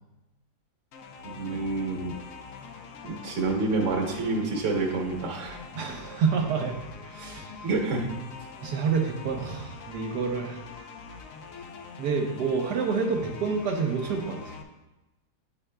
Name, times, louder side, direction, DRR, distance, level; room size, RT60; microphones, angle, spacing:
sound 1, 0.9-14.6, left 4 dB, 65° left, 1.0 m, -44 dB
voice 1, 1.2-2.1 3.0-5.6 7.6-8.1, right 3 dB, 50° right, 1 dB, 1.3 m, -28 dB
voice 2, 5.7-6.8 7.0-7.5 8.6-10.7 12.0-14.6, right 5 dB, 75° right, 1 dB, 1.3 m, -28 dB
9.8 x 4.7 x 2.2 m, 1.0 s
omnidirectional pair, 1.8 m